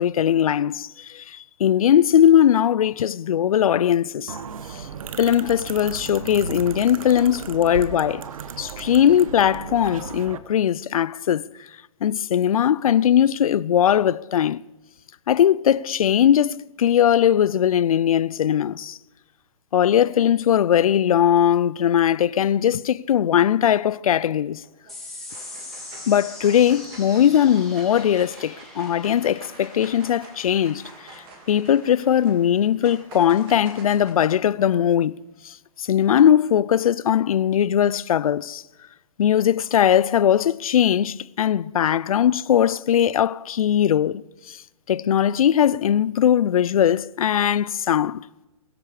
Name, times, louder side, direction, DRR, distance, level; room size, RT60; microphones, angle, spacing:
voice 1, 0.0-4.4 4.7-4.9 5.2-8.2 8.6-11.5 12.0-14.6 15.3-19.0 19.7-24.6 26.1-30.8 31.1-35.2 35.4-38.6 39.2-44.6 44.9-48.2, left 10 dB, 70° left, 0.5 m, -20 dB
sound 1, 4.3-10.4, right 6 dB, 70° right, 1.1 m, -35 dB
sound 2, 24.6-25.0 25.3-34.1, right 3 dB, 40° right, 3.7 m, -46 dB
sound 3, 24.9-31.7, left 2 dB, ahead, 3.7 m, -42 dB
22.0 x 8.3 x 4.9 m
hypercardioid pair, 135°, 19 cm